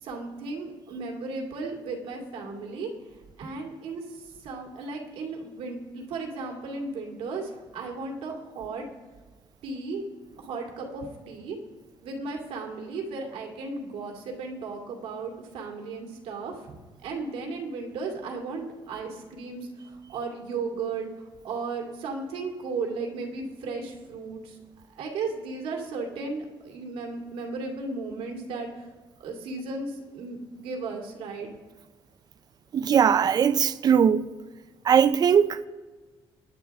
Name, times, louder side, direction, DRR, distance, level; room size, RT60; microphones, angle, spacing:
voice 1, 0.0-2.9 3.4-8.9 9.6-10.0 10.4-11.6 12.0-24.6 24.9-28.9 29.2-31.5, right 3 dB, 85° right, 2.4 m, -35 dB
voice 2, 32.7-34.3 34.8-35.7, right 7 dB, 45° right, 0.5 m, -20 dB
20.0 x 10.0 x 3.6 m
cardioid pair, 115°, 10 cm